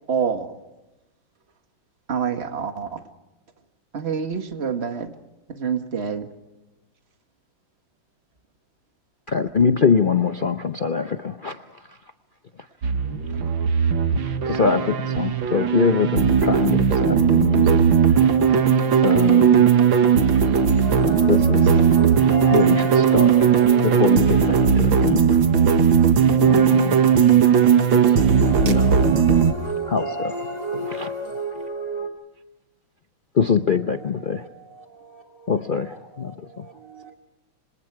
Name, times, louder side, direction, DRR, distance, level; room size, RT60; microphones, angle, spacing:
voice 1, 0.1-0.5 2.1-3.0 3.9-5.1 5.6-6.3, right 6 dB, 35° right, 1.8 m, -26 dB
voice 2, 9.3-11.6 14.4-17.8 18.1-18.6 19.0-19.7 21.3-21.7 22.5-23.5 23.8-25.4 26.3-27.0 28.6-29.0 29.9-30.4 30.8-31.1 33.4-34.4 35.5-36.3, left 6 dB, 85° left, 0.4 m, -23 dB
sound 1, 12.8-29.5, right 7 dB, 75° right, 2.2 m, -17 dB
sound 2, 20.4-25.5 28.0-32.1, right 1 dB, 20° left, 2.2 m, -31 dB
voice 3, 33.7-37.2, right 5 dB, 55° right, 3.3 m, -48 dB
26.5 x 26.5 x 4.8 m
omnidirectional pair, 2.2 m